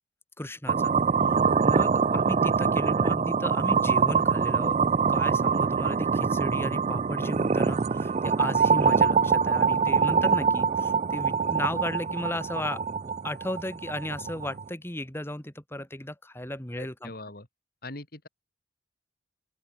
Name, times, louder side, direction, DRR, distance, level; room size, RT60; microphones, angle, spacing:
voice 1, 0.4-0.9 1.6-4.8 5.1-12.8 13.2-17.1, left 1 dB, 15° left, 3.3 m, -35 dB
sound 1, 0.7-14.7, right 5 dB, 35° right, 0.4 m, -24 dB
voice 2, 16.8-17.5 17.8-18.3, left 2 dB, 55° left, 4.5 m, -41 dB
open air
head